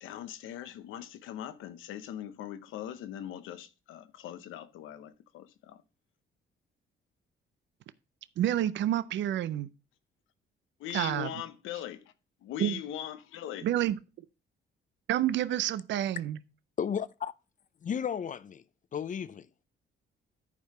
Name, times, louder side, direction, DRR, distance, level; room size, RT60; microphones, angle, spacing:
voice 1, 0.0-5.8 10.8-12.0 12.4-13.7, left 11 dB, 90° left, 0.8 m, -40 dB
voice 2, 8.4-9.7 10.9-11.3 12.6-12.8 13.6-14.3 15.1-16.4, right 12 dB, 65° right, 0.5 m, -29 dB
voice 3, 16.8-17.3 17.8-18.6 18.9-19.5, left 8 dB, 40° left, 0.6 m, -33 dB
11.0 x 4.6 x 4.7 m
cardioid pair, 90°, 20 cm